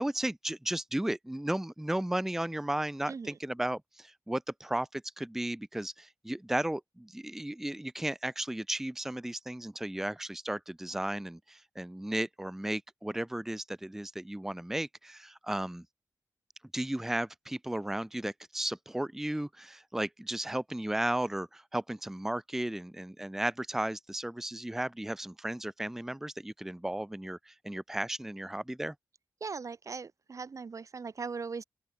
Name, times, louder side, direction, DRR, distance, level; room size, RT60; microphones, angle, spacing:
voice 1, 0.0-15.8 16.7-28.9, right 1 dB, 5° right, 0.5 m, -34 dB
voice 2, 3.1-3.4 29.4-31.6, right 5 dB, 50° right, 5.8 m, -39 dB
open air
wide cardioid pair, 135°, 7 cm